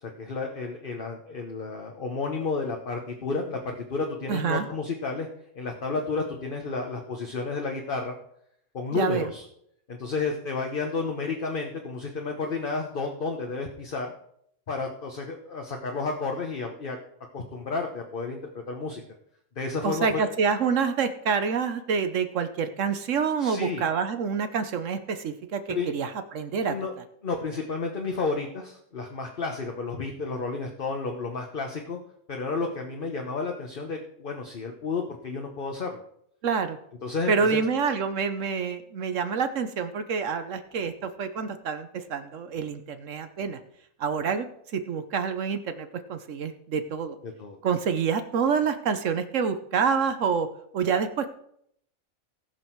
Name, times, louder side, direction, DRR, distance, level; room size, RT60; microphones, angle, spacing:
voice 1, 0.0-5.3 5.5-8.2 8.7-9.4 9.9-14.1 14.7-17.0 17.3-18.4 18.7-19.0 19.6-20.2 23.4-23.8 25.7-25.9 26.6-26.9 27.2-32.0 32.3-36.0 37.0-37.6 47.2-47.6, left 4 dB, 40° left, 2 dB, 1.2 m, -31 dB
voice 2, 4.3-4.7 8.9-9.3 19.8-26.7 36.4-36.8 37.3-43.6 44.0-44.5 44.7-47.2 47.6-50.5 50.7-51.3, right 6 dB, 65° right, 9 dB, 1.1 m, -27 dB
18.0 x 6.1 x 4.6 m, 0.72 s
omnidirectional pair, 1.4 m